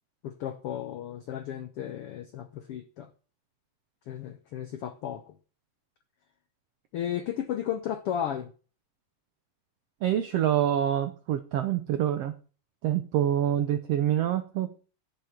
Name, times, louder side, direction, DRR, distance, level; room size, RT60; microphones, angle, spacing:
voice 1, 0.2-3.1 4.1-5.2 6.9-8.5, left 10 dB, 85° left, 9 dB, 1.2 m, -34 dB
voice 2, 10.0-12.3 12.8-14.8, right 11 dB, 75° right, 9 dB, 1.4 m, -26 dB
11.0 x 6.7 x 5.8 m, 0.37 s
omnidirectional pair, 3.7 m